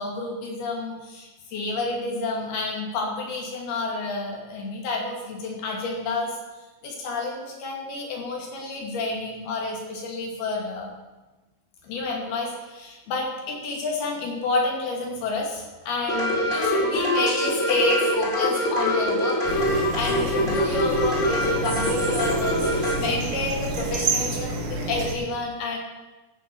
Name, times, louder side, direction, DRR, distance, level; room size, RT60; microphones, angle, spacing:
voice 1, 0.0-6.4 6.8-10.9 11.8-25.8, left 3 dB, 70° left, 0 dB, 4.2 m, -29 dB
sound 1, 16.1-23.0, left 1 dB, 15° left, 4.1 m, -24 dB
sound 2, 19.5-25.2, right 3 dB, 90° right, 4.4 m, -29 dB
15.0 x 7.3 x 7.1 m, 1.1 s
omnidirectional pair, 4.6 m